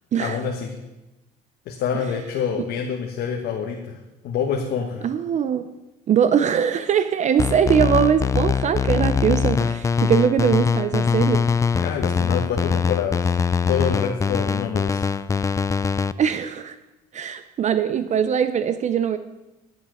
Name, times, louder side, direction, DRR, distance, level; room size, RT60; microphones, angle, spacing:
voice 1, 0.1-0.7 1.6-4.0 4.2-5.1 11.8-13.3 13.7-15.2, left 7 dB, 75° left, 1 dB, 1.3 m, -27 dB
voice 2, 5.0-5.7 6.1-11.5 16.2-16.8 17.1-19.2, right 8 dB, 45° right, 12 dB, 0.5 m, -21 dB
sound 1, 7.4-16.1, left 6 dB, 20° left, 0.3 m, -22 dB
11.5 x 7.1 x 6.4 m, 1.0 s
cardioid pair, 110°, 17 cm